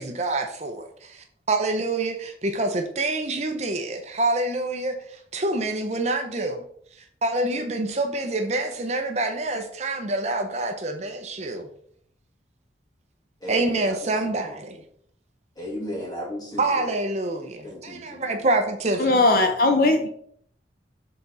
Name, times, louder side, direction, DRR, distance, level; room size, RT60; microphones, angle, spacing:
voice 1, 0.0-6.6 7.2-11.7 13.5-14.8 16.6-19.2, right 2 dB, 40° right, 5 dB, 0.7 m, -26 dB
voice 2, 13.4-14.0 14.2-14.3 15.6-16.9 17.6-18.2, left 1 dB, 20° left, -3 dB, 2.1 m, -35 dB
voice 3, 19.0-20.1, left 2 dB, 50° left, 5 dB, 0.6 m, -19 dB
6.7 x 3.9 x 4.1 m, 0.64 s
head